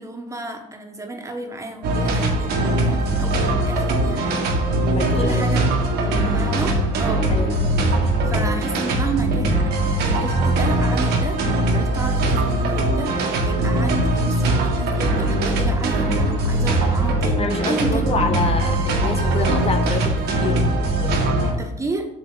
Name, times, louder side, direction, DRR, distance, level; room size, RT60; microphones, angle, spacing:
voice 1, 0.0-4.9 5.1-5.6 6.0-7.3 8.2-11.4 11.7-18.2 21.4-22.1, right 2 dB, 20° right, 3 dB, 1.4 m, -31 dB
sound 1, 1.8-21.5, right 1 dB, 80° right, 1.8 m, -21 dB
voice 2, 4.9-5.5 6.1-6.3 7.3-8.1 17.4-21.6, left 3 dB, 35° left, 5 dB, 0.8 m, -28 dB
7.1 x 7.0 x 4.0 m, 0.82 s
cardioid pair, 110°, 17 cm